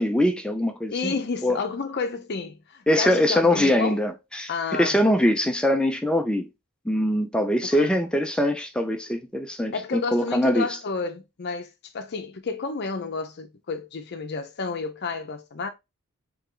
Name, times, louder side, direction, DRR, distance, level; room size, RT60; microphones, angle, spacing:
voice 1, 0.0-1.2 1.4-1.6 2.9-6.5 6.9-10.7, left 1 dB, 5° left, 0.4 m, -23 dB
voice 2, 0.9-4.0 4.5-5.0 7.7-7.9 9.7-15.7, left 4 dB, 50° left, 0.6 m, -31 dB
3.4 x 3.4 x 3.6 m
head